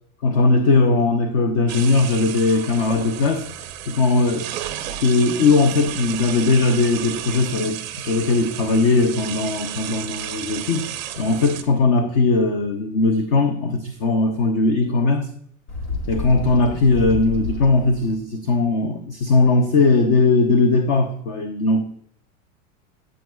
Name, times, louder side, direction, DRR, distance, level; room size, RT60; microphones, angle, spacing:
voice 1, 0.2-4.5 5.0-10.9 11.2-15.3 16.1-21.8, left 3 dB, 30° left, 8 dB, 0.4 m, -19 dB
sound 1, 1.7-11.6, right 12 dB, 35° right, 0.6 m, -33 dB
Bird, 15.7-18.1, left 2 dB, 65° left, 1.8 m, -29 dB
9.0 x 8.5 x 2.2 m, 0.65 s
supercardioid pair, 165°, 40 cm